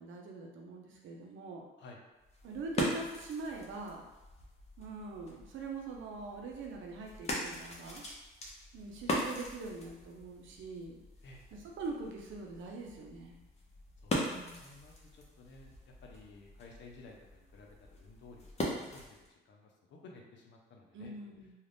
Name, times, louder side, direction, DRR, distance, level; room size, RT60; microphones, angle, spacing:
voice 1, 0.0-1.6 2.4-4.0 4.8-8.0 8.7-11.0 11.5-13.4 14.1-14.6 20.9-21.5, right 3 dB, 75° right, 0 dB, 0.6 m, -43 dB
sound 1, 2.2-19.3, left 1 dB, 35° left, 0.7 m, -41 dB
voice 2, 14.0-18.5 18.9-21.1 21.4-21.5, left 3 dB, 65° left, 0 dB, 0.6 m, -55 dB
2.5 x 2.4 x 3.4 m, 1.1 s
cardioid pair, 90°, 20 cm